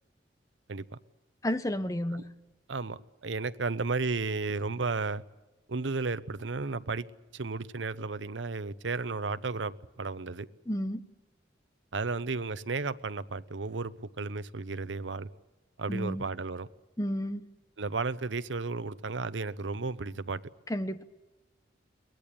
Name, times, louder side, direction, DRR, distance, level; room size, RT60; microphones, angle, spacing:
voice 1, 1.4-2.2 10.7-11.0 15.9-16.3 17.0-17.4 20.7-21.0, equal, 20° left, 1.1 m, -31 dB
voice 2, 2.7-5.2 5.7-7.1 7.3-10.5 11.9-15.3 15.8-16.7 17.8-20.4, right 3 dB, 90° right, 0.9 m, -33 dB
23.0 x 19.0 x 8.6 m
head